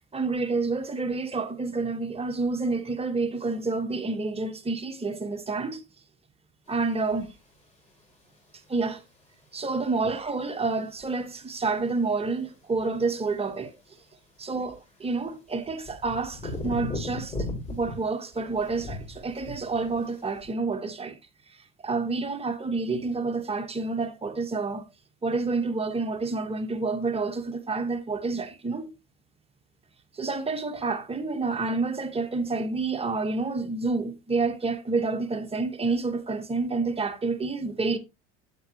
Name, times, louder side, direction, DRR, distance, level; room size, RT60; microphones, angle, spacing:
voice 1, 0.1-5.8 6.7-7.3 8.7-9.0 9.5-13.7 14.4-17.3 17.7-21.2 21.8-24.8 25.2-28.9 30.2-38.0, right 3 dB, 20° right, 1.3 m, -29 dB
sound 1, 7.1-7.3 10.0-10.5 11.0-11.1 13.5-13.6 14.7-14.8 15.2-15.3 15.7-18.1 18.3-20.0 20.4-20.5, left 1 dB, 20° left, 6.2 m, -36 dB
8.1 x 7.4 x 3.0 m
supercardioid pair, 85°, 30 cm